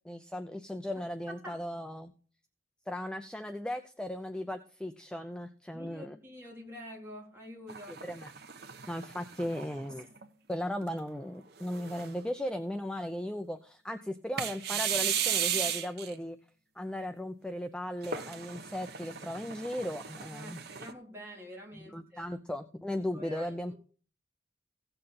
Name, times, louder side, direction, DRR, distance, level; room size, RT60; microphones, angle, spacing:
voice 1, 0.0-2.1 2.9-6.2 7.9-8.3 8.9-10.1 10.5-16.4 16.8-20.6 21.7-23.7, left 1 dB, 5° left, 0.6 m, -37 dB
voice 2, 5.7-8.0 20.3-22.3 23.1-23.7, equal, 15° right, 3.6 m, -47 dB
sound 1, 7.7-10.2 10.8-10.9 11.6-12.3 14.4-16.1 18.0-20.9, right 9 dB, 65° right, 1.0 m, -35 dB
16.5 x 6.7 x 4.2 m
head